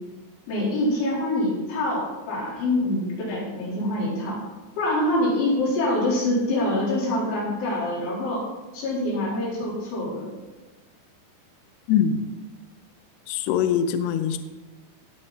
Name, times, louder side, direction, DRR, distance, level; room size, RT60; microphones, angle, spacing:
voice 1, 0.5-4.4 4.8-8.5 8.7-10.3, left 1 dB, 70° left, -6 dB, 6.6 m, -25 dB
voice 2, 11.9-12.2 13.3-14.4, left 8 dB, 90° left, 8 dB, 2.4 m, -22 dB
19.5 x 6.9 x 4.3 m, 1.2 s
omnidirectional pair, 5.8 m